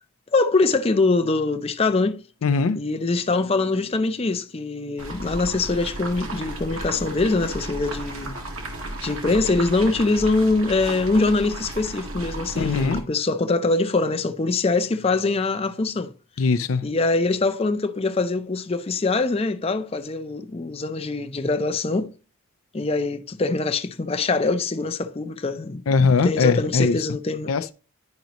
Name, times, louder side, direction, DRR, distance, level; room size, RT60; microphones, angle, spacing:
voice 1, 0.3-2.2 2.7-8.3 9.0-16.1 16.8-22.1 22.7-25.8 26.2-27.7, left 3 dB, 30° left, 0.5 m, -23 dB
voice 2, 2.4-2.8 12.6-13.0 16.4-16.9 25.9-26.9 27.5-27.7, left 4 dB, 90° left, 0.5 m, -20 dB
sound 1, 5.0-13.0, right 1 dB, 85° right, 1.8 m, -34 dB
10.5 x 5.1 x 2.9 m
head